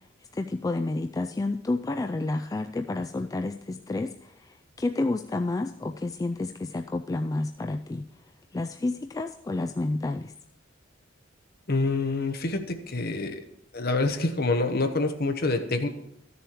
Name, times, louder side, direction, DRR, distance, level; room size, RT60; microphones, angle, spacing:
voice 1, 0.3-4.1 4.8-8.0 8.5-10.3, left 2 dB, 20° left, 5 dB, 0.3 m, -30 dB
voice 2, 11.7-13.4 13.7-15.9, left 3 dB, 50° left, 6 dB, 1.1 m, -26 dB
13.0 x 6.9 x 4.5 m, 0.81 s
head